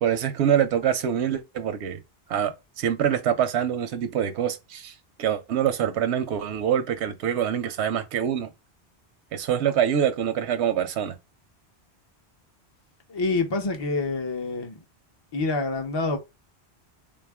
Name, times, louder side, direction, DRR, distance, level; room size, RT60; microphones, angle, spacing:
voice 1, 0.0-2.0 2.3-8.5 9.3-11.2, right 9 dB, 90° right, 0.9 m, -25 dB
voice 2, 13.1-14.8 15.3-16.2, left 3 dB, 35° left, 0.5 m, -26 dB
3.6 x 2.4 x 3.4 m
omnidirectional pair, 1.1 m